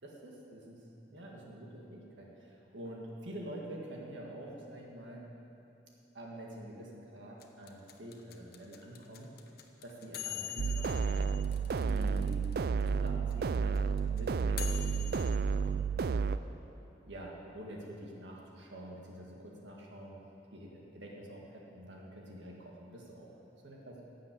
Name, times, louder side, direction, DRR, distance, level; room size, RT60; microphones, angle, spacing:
voice 1, 0.0-0.8 1.1-5.3 6.1-9.6 9.8-11.3 11.8-12.5 12.9-13.8 14.1-16.3 17.1-20.2 20.5-23.3 23.6-24.0, right 1 dB, 75° right, -2 dB, 1.8 m, -47 dB
sound 1, 7.4-12.5 12.8-12.9 13.1-15.4, left 11 dB, 55° left, 0.9 m, -43 dB
sound 2, 10.6-16.4, right 5 dB, 55° right, 0.3 m, -31 dB
12.0 x 7.6 x 8.2 m, 2.9 s
head